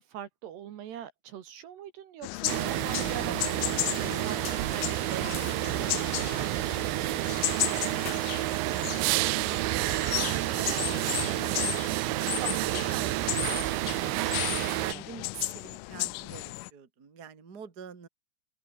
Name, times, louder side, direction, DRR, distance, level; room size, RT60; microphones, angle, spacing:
voice 1, 0.0-3.6 4.2-7.5 12.2-12.6 14.7-15.0, right 10 dB, 65° right, 3.5 m, -42 dB
sound 1, 2.2-16.7, left 23 dB, 85° left, 3.0 m, -35 dB
sound 2, 2.5-14.9, right 21 dB, 85° right, 2.6 m, -29 dB
sound 3, 3.6-8.7, left 6 dB, 40° left, 3.8 m, -48 dB
voice 2, 9.9-14.3 14.7-18.1, right 7 dB, 25° right, 2.3 m, -46 dB
open air
omnidirectional pair, 5.7 m